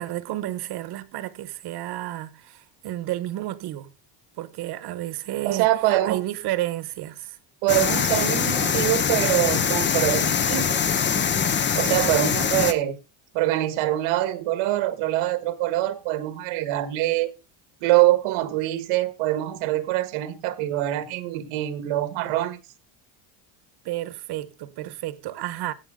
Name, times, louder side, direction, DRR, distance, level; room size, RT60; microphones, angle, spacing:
voice 1, 0.0-3.9 4.3-7.4 23.8-25.7, right 15 dB, 50° right, 1.3 m, -31 dB
voice 2, 5.4-6.2 7.6-10.8 11.7-13.0 13.3-17.3 17.8-22.6, right 15 dB, 85° right, 1.7 m, -24 dB
sound 1, 7.7-12.7, left 7 dB, 25° left, 0.8 m, -23 dB
16.5 x 6.0 x 3.7 m
cardioid pair, 160°, 48 cm